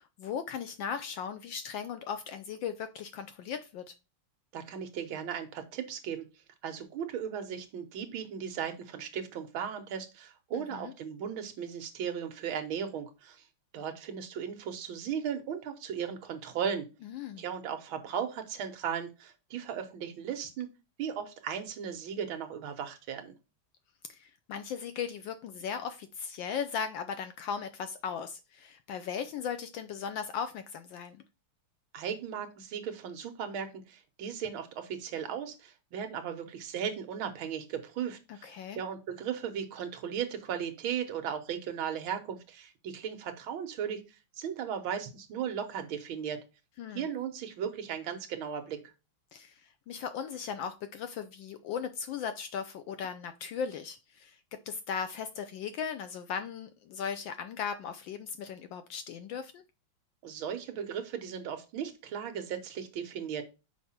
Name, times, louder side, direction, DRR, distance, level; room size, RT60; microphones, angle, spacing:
voice 1, 0.0-3.9 10.5-10.9 17.0-17.4 24.1-31.2 38.3-38.8 46.8-47.1 49.3-59.6, left 7 dB, 75° left, 1.1 m, -37 dB
voice 2, 4.5-6.3 6.6-13.4 13.7-16.9 17.4-20.7 21.0-23.3 31.9-44.1 44.4-46.4 46.9-48.8 60.2-63.4, right 8 dB, 70° right, 1.7 m, -36 dB
5.8 x 4.7 x 4.2 m
omnidirectional pair, 2.4 m